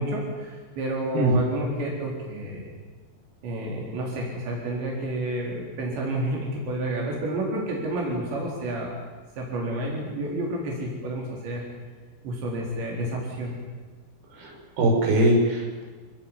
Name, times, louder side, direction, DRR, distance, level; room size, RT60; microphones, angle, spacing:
voice 1, 0.0-2.7 3.4-9.0 9.4-11.6 12.2-13.5, right 1 dB, 85° right, -2 dB, 6.6 m, -30 dB
voice 2, 14.3-15.8, right 1 dB, 60° right, 0 dB, 7.6 m, -22 dB
27.5 x 19.0 x 9.9 m, 1.4 s
omnidirectional pair, 5.0 m